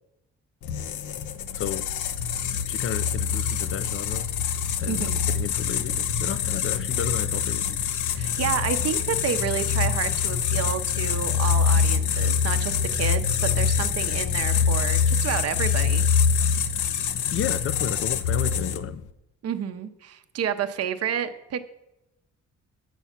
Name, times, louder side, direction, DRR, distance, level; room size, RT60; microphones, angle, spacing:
sound 1, 0.6-19.0, left 7 dB, 80° left, 0.7 m, -25 dB
voice 1, 1.5-1.9 2.7-4.3 4.8-7.8 17.3-19.0, left 9 dB, 45° left, 0.5 m, -32 dB
voice 2, 4.9-5.2 8.1-16.0 19.4-21.6, right 9 dB, 55° right, 0.8 m, -30 dB
9.2 x 7.0 x 5.8 m
cardioid pair, 90°, 30 cm